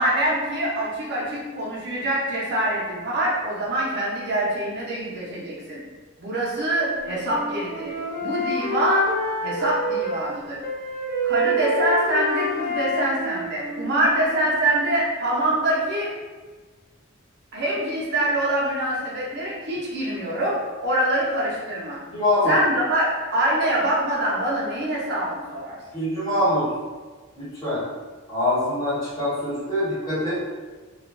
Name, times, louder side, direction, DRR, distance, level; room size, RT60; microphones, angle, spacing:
voice 1, 0.0-5.8 6.2-7.9 8.2-9.1 9.4-10.6 11.2-16.1 17.5-22.0 22.5-25.8, right 1 dB, 50° right, -5 dB, 0.7 m, -24 dB
Wind instrument woodwind instrument, 6.7-10.3 10.6-14.6, equal, 10° right, 1.0 m, -28 dB
voice 2, 22.1-22.5 25.9-26.7 27.3-27.8 28.3-30.3, left 1 dB, 15° left, -12 dB, 1.2 m, -24 dB
2.4 x 2.2 x 2.4 m, 1.3 s
head